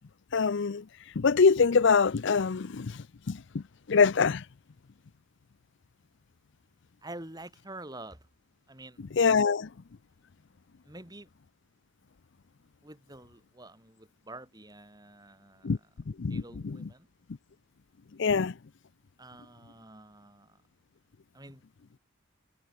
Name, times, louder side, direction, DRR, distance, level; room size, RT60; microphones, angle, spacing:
voice 1, 0.3-0.8 1.2-4.5 9.1-9.7 15.6-15.8 16.1-16.9 18.2-18.5, left 5 dB, 60° left, 0.5 m, -25 dB
voice 2, 7.0-8.2 8.7-9.0 10.9-11.3 12.8-15.7 16.3-17.1 19.2-20.6 21.3-21.6, right 2 dB, 20° right, 5.0 m, -47 dB
head